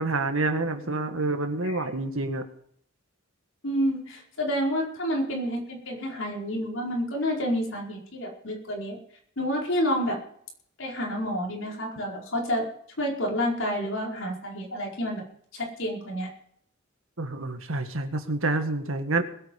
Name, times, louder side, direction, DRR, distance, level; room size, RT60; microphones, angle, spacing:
voice 1, 0.0-2.4 17.2-19.2, right 2 dB, 75° right, 7 dB, 1.9 m, -28 dB
voice 2, 3.6-9.0 9.4-10.2 10.8-12.7 13.0-15.2 15.5-16.3, equal, 65° left, -1 dB, 4.8 m, -29 dB
20.5 x 8.9 x 5.5 m, 0.66 s
head